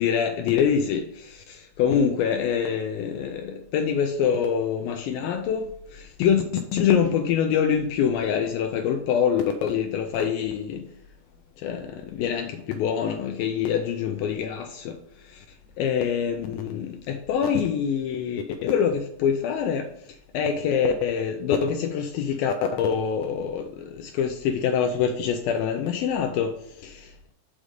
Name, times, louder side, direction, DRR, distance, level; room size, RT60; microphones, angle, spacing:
voice 1, 0.0-6.4 6.7-10.8 11.6-15.0 15.2-15.5 15.8-19.9 20.3-27.3, left 7 dB, 85° left, 2.1 m, -25 dB
6.2 x 5.1 x 6.6 m
omnidirectional pair, 4.6 m